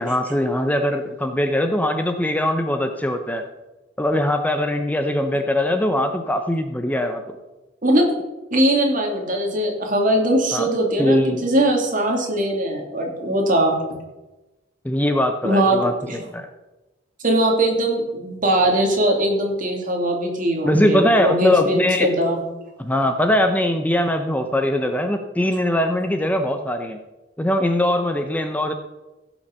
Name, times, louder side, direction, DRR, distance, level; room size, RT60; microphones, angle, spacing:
voice 1, 0.0-3.4 4.0-7.4 10.5-10.7 11.0-11.4 14.8-16.5 20.6-22.1 22.8-27.0 27.4-28.7, left 1 dB, 10° left, 6 dB, 0.7 m, -21 dB
voice 2, 8.5-13.8 15.4-15.8 16.1-16.2 17.2-22.4, right 1 dB, 45° right, 1 dB, 2.8 m, -20 dB
16.0 x 6.0 x 6.7 m, 1.1 s
head